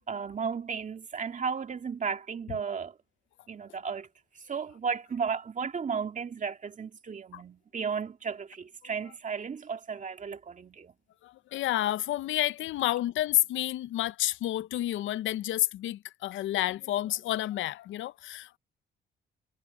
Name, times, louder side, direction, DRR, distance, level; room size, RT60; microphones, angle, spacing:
voice 1, 0.0-2.9 3.5-4.1 4.5-10.9, right 6 dB, 40° right, 2.3 m, -34 dB
voice 2, 11.2-18.6, left 14 dB, 75° left, 0.6 m, -30 dB
cardioid pair, 90°, 20 cm